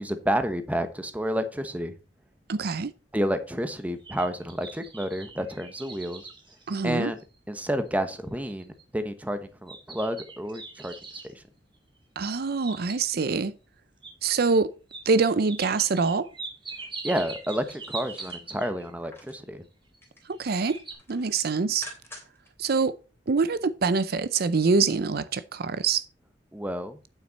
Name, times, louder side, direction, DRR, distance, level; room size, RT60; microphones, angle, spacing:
voice 1, 0.0-1.9 3.1-6.3 6.8-7.2 7.5-11.4 17.0-19.6 26.5-27.0, equal, 10° right, 1.1 m, -30 dB
voice 2, 2.5-2.9 6.7-7.1 12.2-13.5 14.2-14.7 15.1-16.3 20.3-20.8 21.1-21.9 22.6-22.9 23.3-26.1, right 4 dB, 55° right, 0.5 m, -25 dB
sound 1, 4.0-7.4 7.9-8.0 8.5-8.8 9.7-11.3 12.3-13.3 14.0-14.1 14.9-15.0 15.5-18.9 19.9-20.4 20.6-20.9, right 4 dB, 30° right, 2.6 m, -41 dB
sound 2, 17.4-19.5 19.8-20.3 20.7-22.5 22.9-23.0, left 1 dB, 15° left, 3.3 m, -48 dB
9.0 x 7.5 x 4.1 m
head